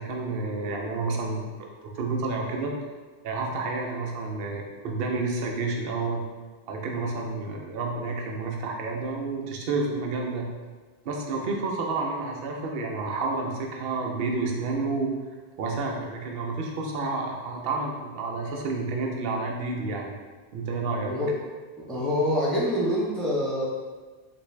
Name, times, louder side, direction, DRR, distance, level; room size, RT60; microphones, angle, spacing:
voice 1, 0.0-2.7 3.2-6.2 6.7-10.5 11.0-15.1 15.6-20.1 20.5-21.1, right 3 dB, 65° right, 0 dB, 0.7 m, -30 dB
voice 2, 21.9-23.6, left 1 dB, ahead, -7 dB, 0.5 m, -25 dB
3.4 x 2.6 x 3.1 m, 1.4 s
omnidirectional pair, 1.1 m